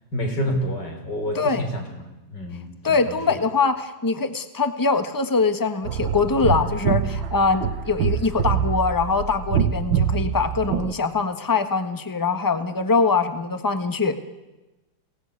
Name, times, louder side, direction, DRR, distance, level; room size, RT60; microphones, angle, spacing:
voice 1, 0.1-1.8 2.3-3.4, equal, 65° left, 4 dB, 4.5 m, -28 dB
voice 2, 2.8-14.2, left 4 dB, 15° left, 9 dB, 1.1 m, -23 dB
sound 1, 5.9-10.9, right 8 dB, 90° right, 1.8 m, -25 dB
23.0 x 17.5 x 9.6 m, 1.1 s
omnidirectional pair, 2.1 m